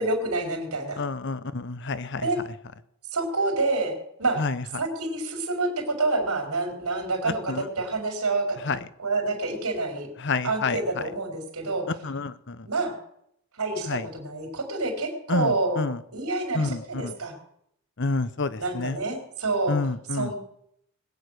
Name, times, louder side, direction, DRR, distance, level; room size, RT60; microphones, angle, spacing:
voice 1, 0.0-1.0 2.2-2.4 3.1-4.4 4.8-8.7 9.0-10.1 10.4-11.9 12.7-12.9 13.6-15.9 16.1-17.4 18.6-19.8 20.1-20.3, right 2 dB, 85° right, 3 dB, 4.2 m, -28 dB
voice 2, 1.0-2.3 4.4-4.6 7.3-7.7 8.6-8.8 10.2-11.0 12.0-12.7 13.9-14.1 15.3-16.0 16.5-17.2 18.0-19.0 19.7-20.3, left 3 dB, 50° left, 15 dB, 0.8 m, -29 dB
21.0 x 9.0 x 6.5 m, 0.74 s
head